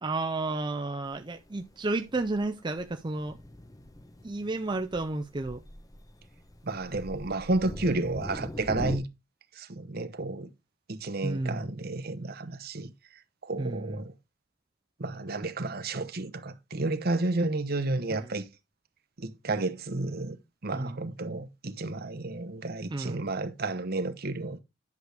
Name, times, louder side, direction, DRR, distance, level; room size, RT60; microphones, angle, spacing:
voice 1, 0.0-3.4 4.2-5.6 11.2-11.7 13.6-14.1 18.1-18.3 20.7-21.0 22.9-23.3, right 2 dB, 25° right, 0.5 m, -32 dB
Thunder, 1.0-9.0, left 1 dB, 20° left, 0.9 m, -42 dB
voice 2, 6.6-9.1 9.5-10.5 10.9-12.9 13.4-14.1 15.0-18.5 19.2-20.4 20.6-24.6, right 2 dB, 50° right, 1.0 m, -31 dB
10.5 x 6.4 x 3.4 m
head